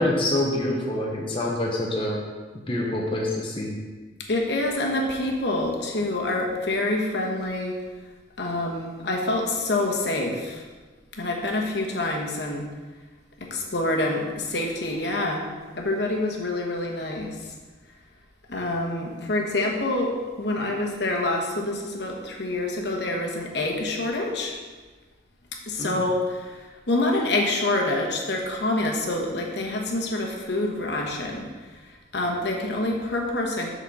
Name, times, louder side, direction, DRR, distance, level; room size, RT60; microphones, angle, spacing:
voice 1, 0.0-2.2 2.7-3.8 25.8-26.0, left 1 dB, 30° left, -2 dB, 0.9 m, -26 dB
voice 2, 4.3-7.8 8.4-10.6 11.1-12.6 13.4-15.5 15.8-17.3 18.5-24.6 25.7-26.6 26.9-31.5 32.1-33.7, left 2 dB, 60° left, 0 dB, 1.1 m, -26 dB
8.0 x 4.0 x 6.0 m, 1.3 s
head